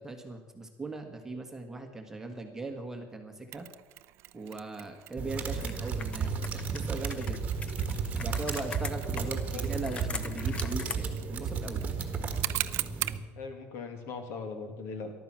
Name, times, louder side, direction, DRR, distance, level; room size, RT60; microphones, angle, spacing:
voice 1, 0.0-3.7 4.3-7.4 8.2-11.8, right 3 dB, 10° right, 3 dB, 1.3 m, -39 dB
Mechanisms, 3.5-13.3, right 17 dB, 55° right, 0.5 m, -41 dB
sound 1, 5.2-13.2, right 5 dB, 25° right, 1.5 m, -33 dB
Computer keyboard, 5.5-11.0, left 5 dB, 20° left, 0.7 m, -42 dB
voice 2, 9.2-9.8 13.3-15.1, left 4 dB, 55° left, 5 dB, 2.5 m, -40 dB
14.0 x 12.0 x 7.4 m, 1.3 s
cardioid pair, 165°, 5 cm